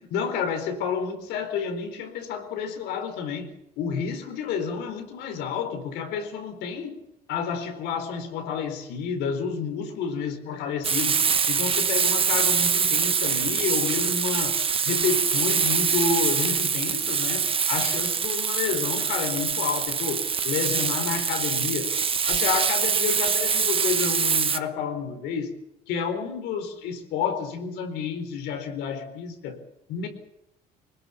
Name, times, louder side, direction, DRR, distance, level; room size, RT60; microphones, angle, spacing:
voice 1, 0.0-3.5 3.8-7.0 7.3-14.6 14.9-21.9 22.3-25.5 25.9-29.6 29.9-30.1, left 6 dB, 90° left, 6 dB, 4.4 m, -30 dB
Frying (food), 10.8-24.6, right 6 dB, 35° right, 1.2 m, -24 dB
23.0 x 20.0 x 7.2 m, 0.84 s
cardioid pair, 110°, 17 cm